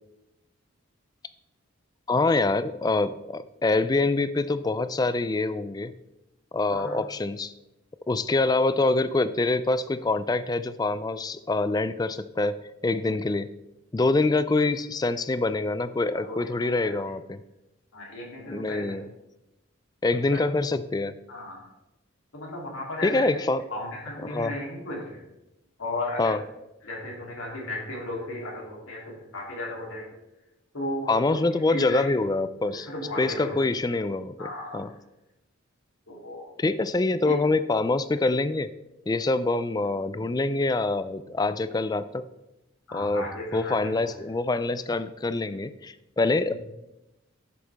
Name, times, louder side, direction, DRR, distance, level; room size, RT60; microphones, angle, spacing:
voice 1, 2.1-5.9 6.5-7.5 8.1-12.6 12.8-13.5 13.9-17.4 18.5-19.0 20.0-21.1 23.0-23.6 24.2-24.6 26.2-26.4 31.1-32.9 33.2-34.9 36.6-38.7 39.1-42.2 42.9-43.3 43.5-46.5, left 2 dB, 20° left, 13 dB, 0.3 m, -25 dB
voice 2, 16.3-16.9 17.9-19.0 20.3-20.4 21.3-21.6 22.3-23.3 23.7-25.0 25.8-26.3 26.8-30.0 30.7-31.4 31.7-32.1 32.7-33.6 34.4-34.9 36.1-36.5 37.2-37.4 42.9-43.7 46.5-46.6, left 1 dB, 85° left, -2 dB, 3.1 m, -35 dB
11.0 x 8.0 x 3.5 m, 0.95 s
head